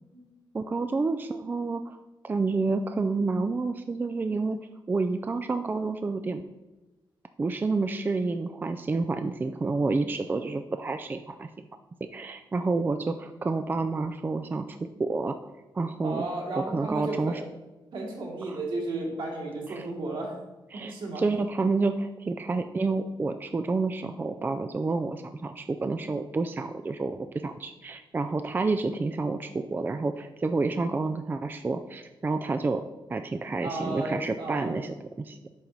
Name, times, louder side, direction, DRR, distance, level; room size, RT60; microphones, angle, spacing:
voice 1, 0.5-2.0 2.2-4.6 4.9-6.4 7.4-11.7 12.1-15.4 15.7-16.3 16.6-17.4 18.5-18.6 19.7-19.9 20.7-32.8 33.1-35.4, right 3 dB, 20° right, 8 dB, 0.3 m, -29 dB
voice 2, 16.0-17.4 17.9-20.4 20.7-21.2 33.6-34.8, right 2 dB, 70° right, -3 dB, 2.8 m, -34 dB
8.7 x 5.5 x 4.6 m, 1.1 s
wide cardioid pair, 145°, 9 cm